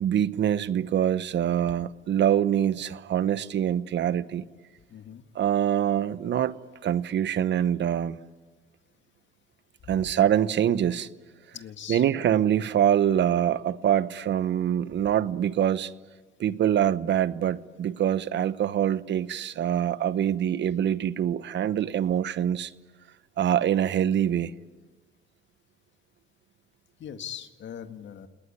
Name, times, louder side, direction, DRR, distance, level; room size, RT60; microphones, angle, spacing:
voice 1, 0.0-4.5 5.3-6.5 6.8-8.2 9.9-11.1 11.9-15.9 16.4-22.7 23.4-24.5, right 10 dB, 65° right, 15 dB, 1.1 m, -24 dB
voice 2, 4.9-5.2 9.9-10.1 11.5-12.1 27.0-28.3, left 9 dB, 70° left, 8 dB, 1.9 m, -40 dB
29.5 x 19.5 x 10.0 m, 1.3 s
cardioid pair, 90°, 20 cm